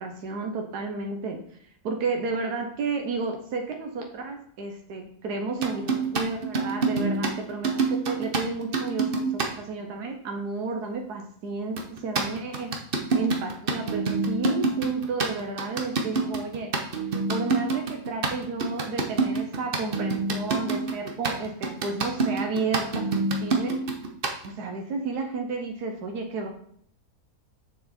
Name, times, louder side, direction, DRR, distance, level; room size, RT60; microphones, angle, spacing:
voice 1, 0.0-1.4 1.8-12.8 13.1-16.7 17.3-23.8 24.4-26.5, right 4 dB, 85° right, 3 dB, 1.4 m, -32 dB
sound 1, 5.6-9.5 11.8-24.5, right 3 dB, 40° right, 1.0 m, -26 dB
6.7 x 6.7 x 4.2 m, 0.64 s
omnidirectional pair, 1.7 m